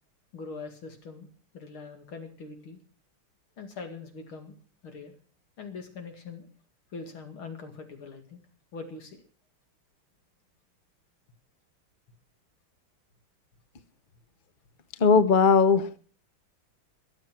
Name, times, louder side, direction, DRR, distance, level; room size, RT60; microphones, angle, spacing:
voice 1, 0.3-1.3 1.5-2.8 3.6-4.6 4.8-5.2 5.6-6.5 6.9-8.4 8.7-9.2, left 4 dB, 80° left, 6 dB, 3.1 m, -42 dB
voice 2, 15.0-16.0, left 5 dB, 50° left, 13 dB, 0.6 m, -19 dB
22.0 x 7.5 x 6.1 m, 0.40 s
omnidirectional pair, 2.3 m